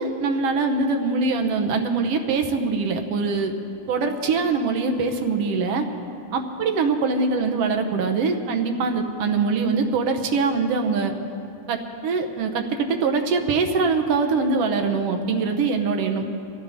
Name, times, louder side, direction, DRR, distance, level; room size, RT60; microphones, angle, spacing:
voice 1, 0.0-3.5 3.9-5.9 6.3-11.1 11.7-16.3, right 4 dB, 65° right, 5 dB, 1.7 m, -23 dB
24.0 x 15.5 x 3.6 m, 2.7 s
omnidirectional pair, 3.4 m